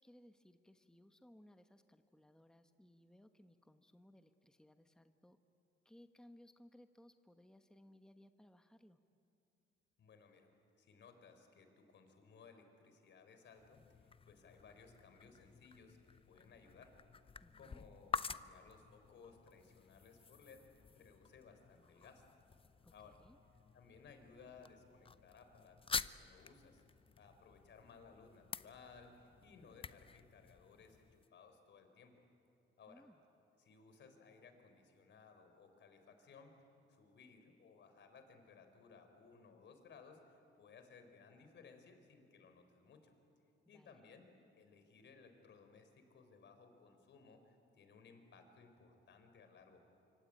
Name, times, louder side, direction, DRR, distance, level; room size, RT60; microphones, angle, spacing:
voice 1, 0.0-5.4 5.8-9.0 17.4-17.8 22.8-23.4 32.9-33.2 43.6-43.9, left 1 dB, 5° left, 8 dB, 1.1 m, -63 dB
voice 2, 10.0-10.5 10.8-16.9 17.6-22.2 22.9-23.2 23.7-26.8 27.2-32.1 32.8-33.0 33.6-36.5 36.9-43.1 43.7-44.3 44.6-49.8, left 5 dB, 65° left, 7 dB, 4.1 m, -61 dB
sound 1, 13.5-31.3, left 5 dB, 25° left, 0.6 m, -49 dB
25.5 x 25.0 x 8.8 m, 2.7 s
cardioid pair, 90°, 20 cm